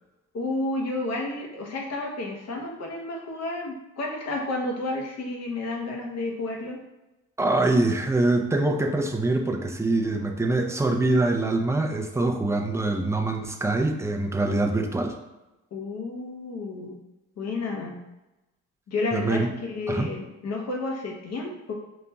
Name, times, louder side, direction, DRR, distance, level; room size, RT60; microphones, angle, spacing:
voice 1, 0.3-6.8 15.7-17.0 17.4-17.9 18.9-21.7, left 2 dB, 60° left, 0 dB, 1.0 m, -31 dB
voice 2, 7.4-15.1 19.1-19.5 19.9-20.1, right 2 dB, 10° right, 3 dB, 0.5 m, -24 dB
5.2 x 2.8 x 2.3 m, 1.0 s
cardioid pair, 90°, 30 cm